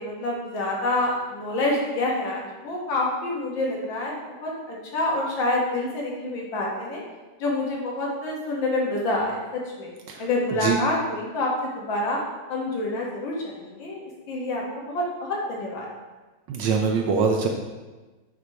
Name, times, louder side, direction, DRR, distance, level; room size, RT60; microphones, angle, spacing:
voice 1, 0.0-7.0 7.4-9.9 10.2-12.2 12.5-15.9, left 2 dB, 70° left, -3 dB, 1.9 m, -27 dB
voice 2, 16.5-17.5, right 5 dB, 70° right, 2 dB, 1.2 m, -23 dB
8.2 x 2.9 x 4.5 m, 1.2 s
omnidirectional pair, 2.2 m